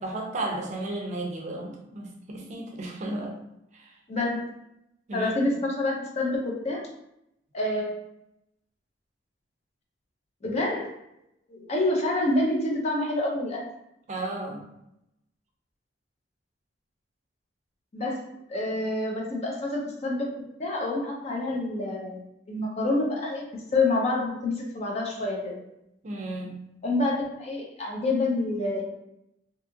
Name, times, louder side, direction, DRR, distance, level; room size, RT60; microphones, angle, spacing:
voice 1, 0.0-3.4 3.7-3.9 5.1-5.3 14.1-14.6 26.0-26.6, right 2 dB, 40° right, 0 dB, 0.5 m, -34 dB
voice 2, 4.1-4.5 5.1-6.8 7.5-8.0 10.4-10.9 11.5-13.6 17.9-18.2 18.5-20.3 20.6-23.4 23.7-25.6 26.8-28.8, left 2 dB, 35° left, -1 dB, 0.5 m, -27 dB
2.7 x 2.3 x 2.6 m, 0.82 s
head